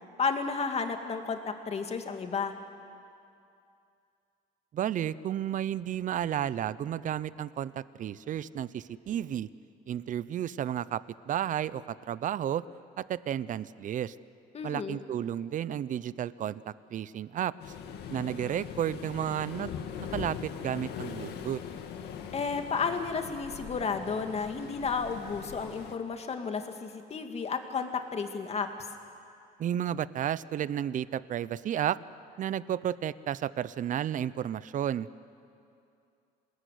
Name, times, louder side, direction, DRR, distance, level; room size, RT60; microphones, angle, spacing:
voice 1, 0.2-2.5 14.5-15.0 22.3-28.7, left 5 dB, 40° left, 5 dB, 2.5 m, -32 dB
voice 2, 4.7-9.5 9.9-12.6 13.0-14.1 14.6-17.5 18.1-19.7 20.1-21.6 29.6-32.0 32.4-35.1, right 10 dB, 50° right, 18 dB, 0.7 m, -32 dB
Waves surf, 17.6-25.9, left 7 dB, 75° left, 2.2 m, -41 dB
27.0 x 20.0 x 9.6 m, 2.5 s
cardioid pair, 110°, 17 cm